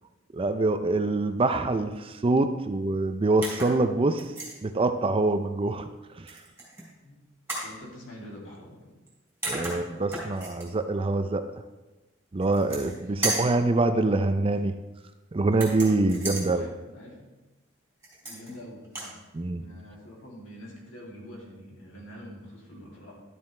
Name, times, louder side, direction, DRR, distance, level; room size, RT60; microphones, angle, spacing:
voice 1, 0.3-4.2 4.6-5.9 6.1-6.3 9.4-11.5 12.3-14.7 15.3-16.7 19.3-19.6, right 2 dB, 30° right, 9 dB, 0.4 m, -25 dB
sound 1, 3.4-3.8 4.2-4.6 6.3-6.8 7.5-7.7 9.1-9.2 9.4-10.7 12.4-13.0 13.2-13.6 15.5-16.5 18.0-18.5 18.8-19.1, right 2 dB, 10° right, 3.6 m, -33 dB
voice 2, 7.5-8.9 12.9-13.3 14.3-14.5 16.2-17.3 18.2-19.2 19.5-23.1, equal, 70° left, -3 dB, 2.6 m, -45 dB
12.0 x 7.3 x 3.3 m, 1.1 s
head